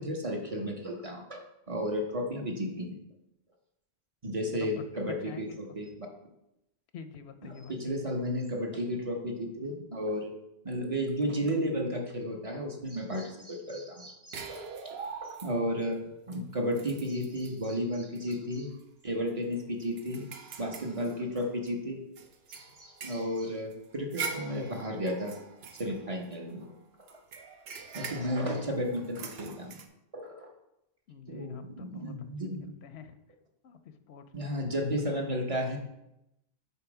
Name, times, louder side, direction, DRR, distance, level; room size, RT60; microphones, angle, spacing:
voice 1, 0.0-1.4 1.7-3.0 4.2-6.1 7.4-10.3 10.6-18.7 19.0-20.3 20.6-22.0 22.5-25.3 25.8-26.7 27.1-27.2 27.7-29.8 30.1-30.5 31.3-32.7 34.3-35.8, equal, 35° right, 1 dB, 0.8 m, -33 dB
voice 2, 4.9-5.6 5.9-6.0 6.9-8.0 31.1-32.3 32.6-33.2 33.6-34.8, left 7 dB, 90° left, 9 dB, 0.9 m, -48 dB
sound 1, 14.3-15.8 16.3-16.4 16.7-17.6 18.1-18.3 18.7-18.8 19.3-21.7 22.2-26.6 27.1-29.9, right 5 dB, 75° right, 0.9 m, -43 dB
5.5 x 3.9 x 4.8 m, 0.87 s
omnidirectional pair, 1.1 m